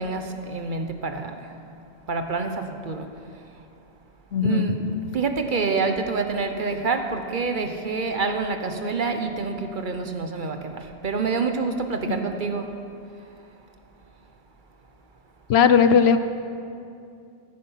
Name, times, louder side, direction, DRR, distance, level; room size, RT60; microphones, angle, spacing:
voice 1, 0.0-1.5 2.1-3.1 4.4-12.8, right 4 dB, 50° right, 6 dB, 1.0 m, -27 dB
voice 2, 4.3-4.8 12.1-12.2 15.5-16.2, left 6 dB, 80° left, 11 dB, 0.9 m, -18 dB
16.0 x 10.0 x 5.7 m, 2.5 s
omnidirectional pair, 1.1 m